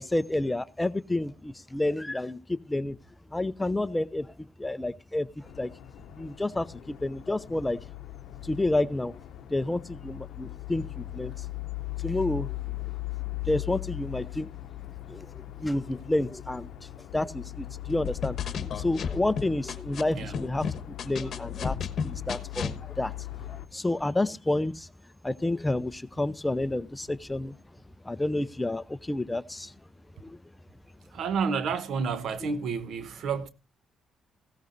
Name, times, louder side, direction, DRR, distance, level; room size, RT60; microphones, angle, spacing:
voice 1, 0.0-3.0 3.3-5.7 6.2-7.8 8.4-9.1 9.5-11.4 12.0-12.6 13.5-14.5 15.1-16.7 17.1-18.4 18.8-23.1 23.5-24.9 25.2-27.6 28.0-29.7 30.2-30.4, left 2 dB, 15° left, 0.6 m, -30 dB
sound 1, 5.4-23.7, left 18 dB, 80° left, 0.7 m, -39 dB
sound 2, 18.0-20.0 20.3-22.8, left 6 dB, 55° left, 1.2 m, -32 dB
voice 2, 31.1-33.5, right 5 dB, 70° right, 1.0 m, -30 dB
16.0 x 13.5 x 2.6 m
cardioid pair, 90°, 0 cm